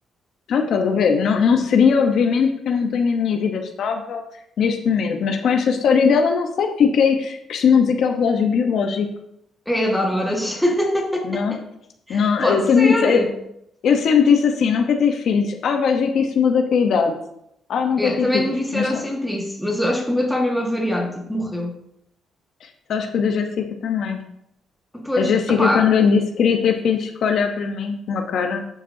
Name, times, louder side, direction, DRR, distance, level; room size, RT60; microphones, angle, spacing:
voice 1, 0.5-4.2 4.6-9.1 11.2-11.6 12.1-13.2 13.8-17.1 17.7-18.4 18.7-19.0 22.6-24.2 25.2-28.7, left 6 dB, 65° left, 4 dB, 0.9 m, -19 dB
voice 2, 9.7-11.6 12.1-13.3 18.0-21.8 24.9-25.9, left 1 dB, 5° left, 0 dB, 1.7 m, -23 dB
11.5 x 5.9 x 2.7 m, 0.76 s
cardioid pair, 90°, 0 cm